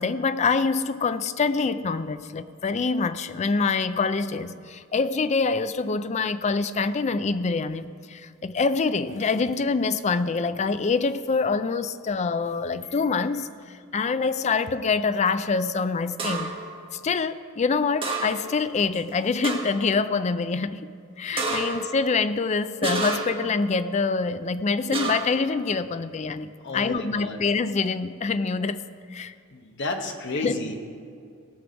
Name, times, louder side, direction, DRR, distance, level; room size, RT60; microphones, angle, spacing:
voice 1, 0.0-16.5 16.9-20.9 21.2-28.8 29.1-29.3 30.4-30.6, left 4 dB, 30° left, 13 dB, 0.3 m, -25 dB
sound 1, 16.2-16.7 18.0-18.6 18.9-19.0 19.4-19.9 21.4-21.9 22.8-23.5 24.9-25.4, right 3 dB, 25° right, 1.3 m, -29 dB
voice 2, 21.3-21.6 26.6-27.4 29.5-30.7, left 2 dB, 55° left, 4 dB, 1.1 m, -32 dB
18.5 x 6.2 x 5.1 m, 2.3 s
head